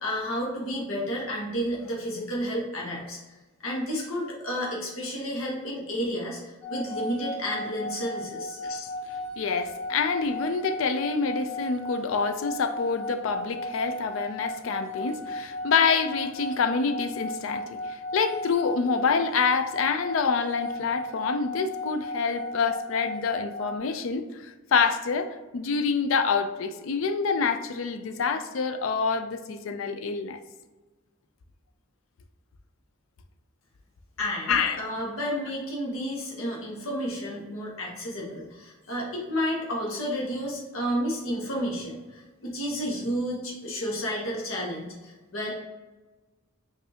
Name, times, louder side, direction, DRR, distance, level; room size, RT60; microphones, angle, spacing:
voice 1, 0.0-3.2 3.6-8.6 34.2-45.5, equal, 90° left, 1.0 m, -31 dB
sound 1, 6.6-23.8, left 1 dB, 5° left, 0.6 m, -36 dB
voice 2, 9.4-30.4 34.5-34.8, left 5 dB, 75° left, 0.4 m, -27 dB
5.4 x 2.6 x 2.8 m
head